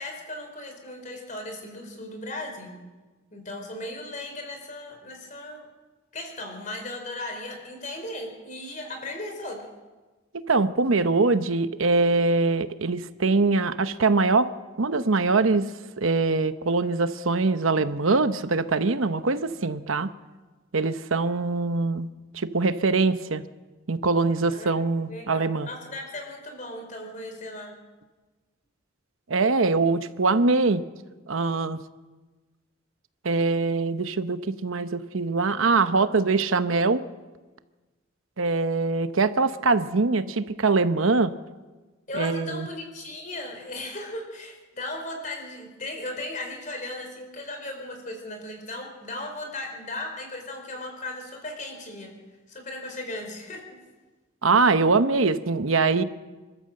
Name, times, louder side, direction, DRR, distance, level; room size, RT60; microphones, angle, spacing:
voice 1, 0.0-2.8 3.3-5.7 6.1-9.7 24.4-24.7 25.0-27.7 42.1-52.1 52.5-53.8, left 1 dB, 40° left, 3 dB, 4.3 m, -37 dB
voice 2, 10.5-14.5 14.8-15.7 16.0-20.1 20.7-22.1 22.3-23.4 23.9-25.7 29.3-30.8 31.3-31.8 33.2-37.0 38.4-41.3 42.1-42.7 54.4-56.0, right 3 dB, 85° right, 11 dB, 0.9 m, -23 dB
26.5 x 13.0 x 7.7 m, 1.3 s
head